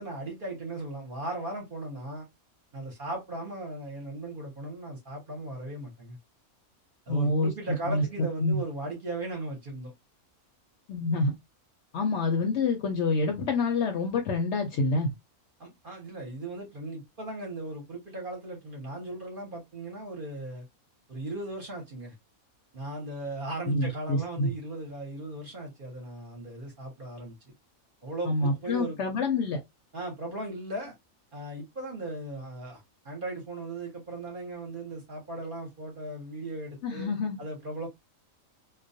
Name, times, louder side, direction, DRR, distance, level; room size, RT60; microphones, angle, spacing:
voice 1, 0.0-2.3 2.7-6.2 7.1-9.9 15.6-20.7 21.1-22.1 22.7-27.4 28.0-29.0 29.9-30.9 31.3-37.1 37.4-37.9, right 2 dB, 45° right, 0.8 m, -37 dB
voice 2, 7.1-7.5 7.9-8.0 8.4-8.6 10.9-11.3 11.9-15.1 23.7-24.5 28.2-29.6 36.8-37.4, left 3 dB, 65° left, 0.7 m, -27 dB
2.3 x 2.2 x 2.5 m
omnidirectional pair, 1.5 m